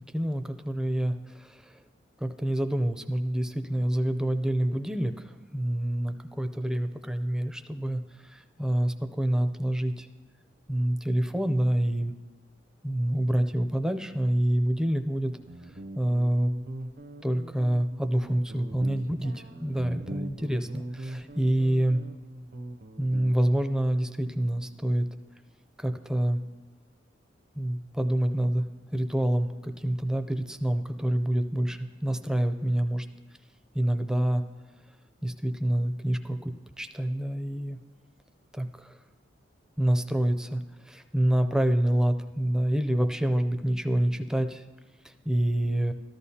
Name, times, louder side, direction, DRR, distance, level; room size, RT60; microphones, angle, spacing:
voice 1, 0.1-1.7 2.2-10.1 10.7-12.1 12.8-15.3 16.0-16.5 17.2-22.0 23.0-25.1 25.8-26.4 27.6-28.6 28.9-33.1 33.7-34.4 35.2-37.8 38.5-39.0 39.8-44.6 45.0-45.9, right 1 dB, 5° right, 8 dB, 0.5 m, -27 dB
Guitar, 15.2-23.6, right 1 dB, 55° right, 0.7 m, -41 dB
13.5 x 13.0 x 2.8 m, 1.2 s
head